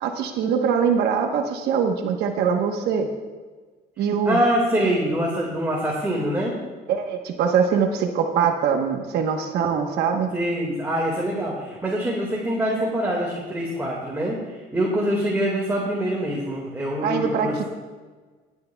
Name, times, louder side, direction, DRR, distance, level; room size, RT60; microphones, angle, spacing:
voice 1, 0.0-3.1 4.0-4.4 6.9-10.3 17.0-17.6, right 6 dB, 75° right, 4 dB, 1.1 m, -23 dB
voice 2, 4.3-6.6 10.3-14.4 14.7-17.6, equal, 15° right, -4 dB, 2.0 m, -24 dB
18.5 x 9.6 x 2.3 m, 1.4 s
cardioid pair, 110°, 17 cm